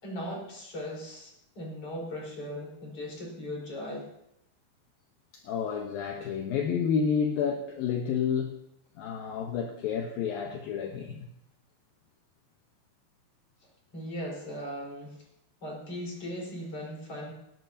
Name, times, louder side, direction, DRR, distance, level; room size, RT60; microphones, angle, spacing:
voice 1, 0.0-4.1 13.9-15.3 15.6-17.3, equal, 35° left, -1 dB, 5.4 m, -38 dB
voice 2, 5.3-8.6 9.0-11.3, left 6 dB, 70° left, 2 dB, 2.7 m, -30 dB
18.5 x 18.0 x 2.8 m, 0.80 s
omnidirectional pair, 4.7 m